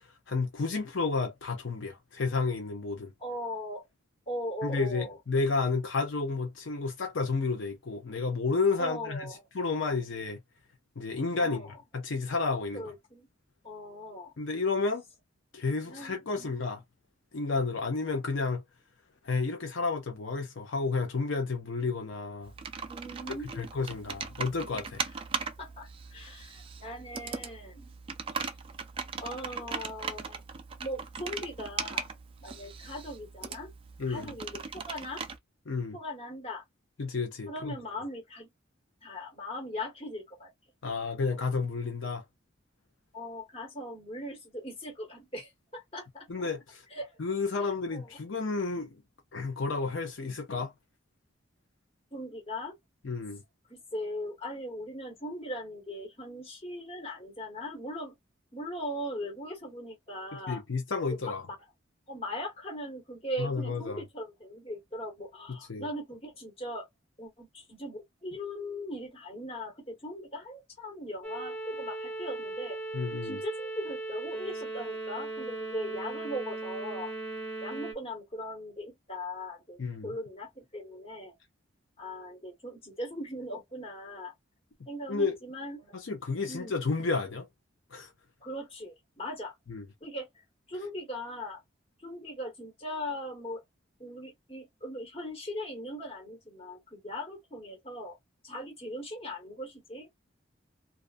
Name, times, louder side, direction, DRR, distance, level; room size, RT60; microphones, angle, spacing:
voice 1, 0.0-3.1 4.6-10.4 11.0-12.9 14.4-15.0 15.5-16.8 17.3-18.6 19.2-22.5 23.6-25.0 34.0-34.3 35.7-36.0 37.0-37.7 40.8-42.2 46.3-46.8 47.2-49.0 49.3-50.7 53.0-53.4 60.5-61.4 63.4-64.0 65.7-65.9 72.9-73.4 79.8-80.1 85.1-85.4 85.9-87.5 87.9-88.1 89.7-89.8, left 4 dB, 70° left, 0.6 m, -31 dB
voice 2, 3.2-3.9 4.3-5.2 8.8-9.4 11.4-11.8 12.7-13.3 13.6-14.3 15.8-16.5 22.9-23.7 24.0-24.2 25.6-27.9 29.2-30.4 30.8-32.1 32.4-33.7 34.1-35.2 35.9-36.6 37.5-38.5 39.0-40.5 43.1-46.3 46.9-47.2 47.6-48.2 52.1-52.7 53.7-58.2 58.5-60.6 61.1-61.5 62.1-66.9 67.2-72.8 73.2-77.1 77.6-81.3 82.0-84.3 84.9-86.0 86.5-86.9 88.4-89.5 90.0-91.6 92.0-93.6 94.0-98.2 98.4-100.1, left 1 dB, 30° left, 1.2 m, -39 dB
Computer keyboard, 22.4-35.4, right 5 dB, 30° right, 0.3 m, -39 dB
sound 1, 71.2-77.9, right 2 dB, 5° left, 0.7 m, -37 dB
2.4 x 2.3 x 2.5 m
head